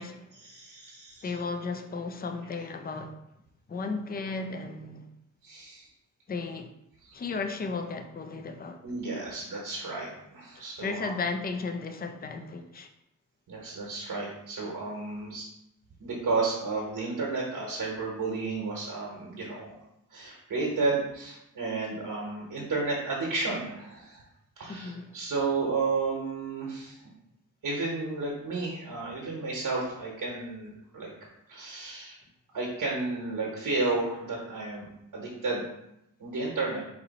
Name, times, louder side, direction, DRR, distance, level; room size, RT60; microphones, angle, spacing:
voice 1, 0.4-1.3 5.4-5.9 7.0-7.2 8.8-11.1 13.5-15.5 16.0-19.7 20.1-24.2 24.6-27.0 27.6-31.1 31.5-32.2 32.5-35.6 36.2-36.8, right 3 dB, 85° right, 1.1 m, -32 dB
voice 2, 1.2-3.2 3.7-5.1 6.3-6.7 7.1-8.8 9.2-9.3 10.8-12.9 24.7-25.1, left 4 dB, 30° left, 0.4 m, -34 dB
4.4 x 2.7 x 4.0 m
cardioid pair, 75°, 32 cm